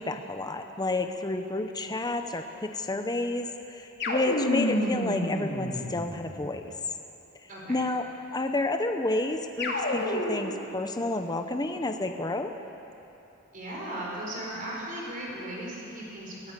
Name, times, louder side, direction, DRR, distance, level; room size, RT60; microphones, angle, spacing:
voice 1, 0.0-6.7 7.7-8.1 8.3-12.5, left 2 dB, 20° left, 6 dB, 0.8 m, -30 dB
sound 1, 4.0-6.5 9.6-10.6, left 1 dB, 55° left, 2.7 m, -29 dB
voice 2, 7.5-7.8 13.5-16.5, right 1 dB, 40° right, -4 dB, 4.6 m, -37 dB
22.0 x 16.0 x 8.3 m, 3.0 s
head